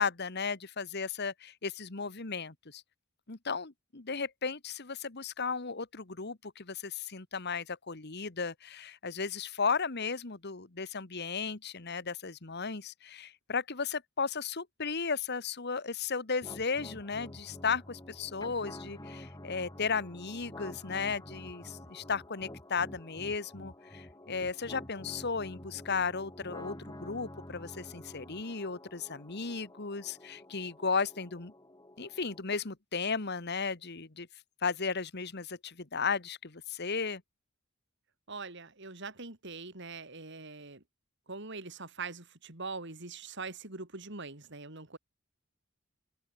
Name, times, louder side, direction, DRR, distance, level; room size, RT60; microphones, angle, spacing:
voice 1, 0.0-2.8 3.3-31.5 32.0-34.3 34.6-37.2, left 5 dB, 55° left, 1.6 m, -35 dB
sound 1, 16.4-32.4, left 1 dB, 20° left, 3.1 m, -49 dB
voice 2, 38.3-40.8 41.3-45.0, right 4 dB, 60° right, 3.8 m, -42 dB
head